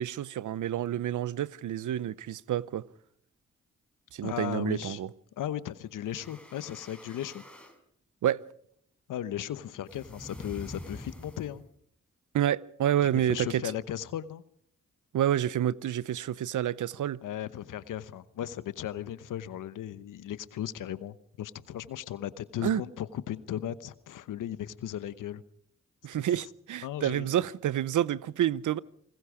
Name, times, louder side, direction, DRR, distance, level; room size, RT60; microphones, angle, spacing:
voice 1, 0.0-2.9 4.1-5.1 8.2-8.4 12.3-13.6 15.1-17.2 22.6-22.8 26.0-28.8, right 11 dB, 75° right, 0.7 m, -28 dB
voice 2, 4.2-5.0 5.4-7.4 9.1-11.6 13.1-14.4 17.2-25.4 26.1-26.2 26.8-27.3, left 11 dB, 90° left, 1.0 m, -36 dB
sound 1, 6.0-7.8 9.9-11.7, left 1 dB, 5° left, 4.9 m, -46 dB
28.0 x 20.0 x 5.0 m
supercardioid pair, 45°, 31 cm